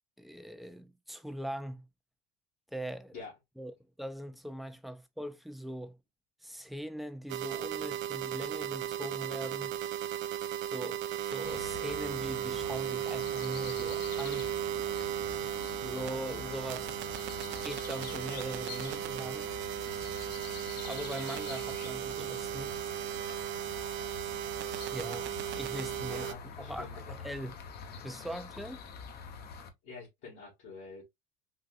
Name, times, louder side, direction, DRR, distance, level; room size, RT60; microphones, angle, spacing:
voice 1, 0.2-1.9 2.7-3.1 3.6-6.0 6.4-9.7 10.6-14.5 15.8-17.0 17.6-19.5 20.8-22.8 24.8-26.3 26.6-27.5 28.0-28.8, equal, ahead, 0.5 m, -41 dB
sound 1, 7.3-26.3, right 11 dB, 60° right, 0.4 m, -36 dB
sound 2, 11.4-29.7, left 6 dB, 50° left, 0.8 m, -46 dB
voice 2, 26.1-26.9 29.8-31.0, left 4 dB, 75° left, 1.9 m, -46 dB
4.0 x 2.4 x 2.4 m
supercardioid pair, 90°, 21 cm